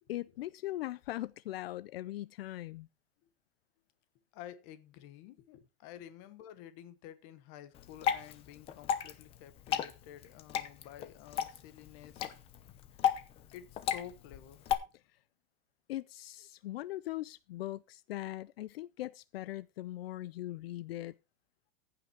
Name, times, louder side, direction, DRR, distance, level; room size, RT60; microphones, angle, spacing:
voice 1, 0.1-2.9 15.9-21.2, left 15 dB, 80° left, 0.6 m, -40 dB
voice 2, 4.3-12.4 13.5-14.6, left 11 dB, 35° left, 1.2 m, -51 dB
Water / Drip, 7.7-14.7, left 9 dB, 20° left, 0.7 m, -35 dB
15.0 x 5.9 x 4.6 m
supercardioid pair, 170°, 29 cm